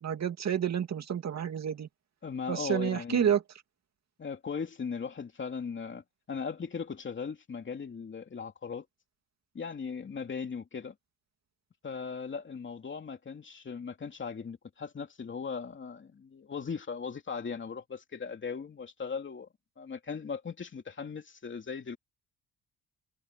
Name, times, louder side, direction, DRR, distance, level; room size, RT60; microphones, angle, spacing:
voice 1, 0.0-1.9 2.5-3.4, right 8 dB, 50° right, 2.6 m, -29 dB
voice 2, 2.2-3.3 4.2-8.9 9.5-10.9 11.8-19.5 19.8-22.0, left 5 dB, 35° left, 3.0 m, -38 dB
cardioid pair, 125°, 35 cm